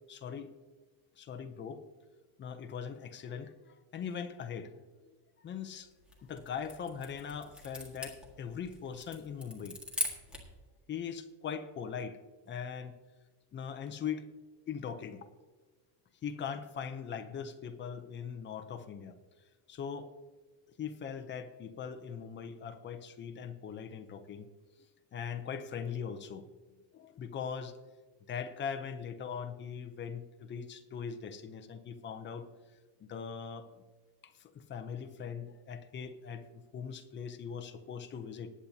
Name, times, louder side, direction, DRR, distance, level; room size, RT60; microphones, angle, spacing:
voice 1, 0.1-0.5 1.2-1.8 2.4-4.7 5.4-5.9 6.2-9.8 10.9-12.2 12.5-12.9 13.5-14.3 14.7-15.3 16.2-19.2 19.7-20.1 20.8-24.5 25.1-26.5 26.9-27.7 28.3-32.5 33.0-33.7 34.2-38.5, left 7 dB, 25° left, 7 dB, 0.6 m, -40 dB
sound 1, 5.9-10.6, left 2 dB, ahead, 1.7 m, -41 dB
20.0 x 8.7 x 2.8 m, 1.3 s
cardioid pair, 180°, 45 cm